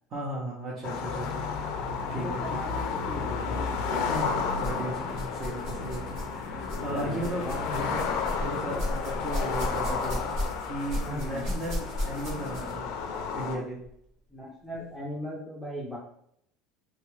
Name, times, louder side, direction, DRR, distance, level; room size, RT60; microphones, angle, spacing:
voice 1, 0.1-1.5 2.1-2.6 4.1-10.4 10.6-12.9 13.3-13.8, right 1 dB, 35° right, -6 dB, 0.7 m, -36 dB
sound 1, 0.8-13.6, left 5 dB, 65° left, 0.4 m, -32 dB
voice 2, 1.9-4.2 6.9-7.9 10.9-11.6 14.3-16.0, left 1 dB, ahead, -6 dB, 0.5 m, -38 dB
sound 2, 4.1-4.8 5.1-12.9 13.8-13.9 14.7-14.8, left 1 dB, 55° right, 1.1 m, -35 dB
3.0 x 2.4 x 3.1 m, 0.71 s
cardioid pair, 155°, 0 cm